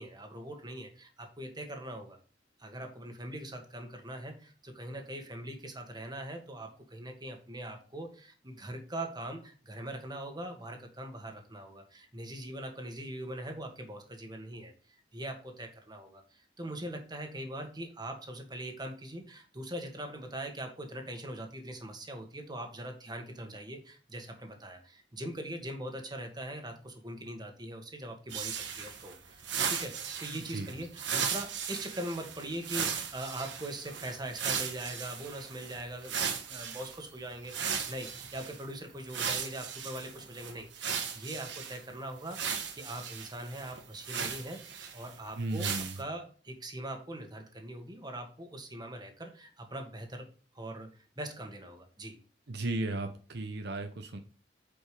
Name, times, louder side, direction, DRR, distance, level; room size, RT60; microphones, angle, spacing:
voice 1, 0.0-2.2 2.6-42.4 42.7-50.3 50.5-52.2, right 1 dB, 25° right, 4 dB, 1.7 m, -42 dB
sound 1, 28.3-37.0 37.5-38.6 39.1-41.8 42.3-45.1 45.5-46.0, right 7 dB, 80° right, 1.5 m, -37 dB
voice 2, 30.3-30.7 45.4-46.0 52.5-54.2, right 2 dB, 65° right, 6 dB, 0.9 m, -35 dB
8.6 x 5.2 x 5.0 m, 0.38 s
head